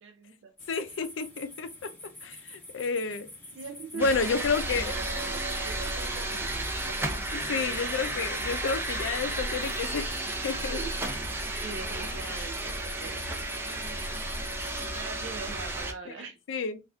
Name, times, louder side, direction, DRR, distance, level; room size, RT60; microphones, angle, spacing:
voice 1, 0.0-0.5 3.5-4.2 4.6-7.5 10.7-13.2 14.9-16.4, right 4 dB, 85° right, 0.4 m, -43 dB
sound 1, 0.6-14.9, left 1 dB, 10° left, 0.9 m, -47 dB
voice 2, 0.7-1.9 2.2-3.3 3.9-4.9 7.3-10.1 10.4-10.8 16.1-16.2 16.5-16.8, left 5 dB, 85° left, 0.4 m, -30 dB
sound 2, 4.0-15.9, right 2 dB, 10° right, 0.4 m, -33 dB
3.4 x 2.4 x 2.2 m
head